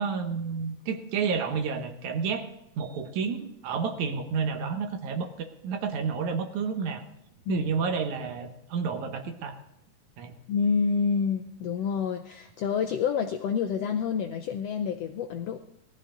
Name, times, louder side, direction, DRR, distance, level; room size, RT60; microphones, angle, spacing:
voice 1, 0.0-2.5 2.8-7.0 7.5-9.6 10.2-10.3, right 5 dB, 70° right, 6 dB, 2.5 m, -30 dB
voice 2, 10.5-15.6, left 6 dB, 80° left, 5 dB, 1.5 m, -28 dB
19.0 x 13.5 x 3.9 m, 0.78 s
omnidirectional pair, 3.6 m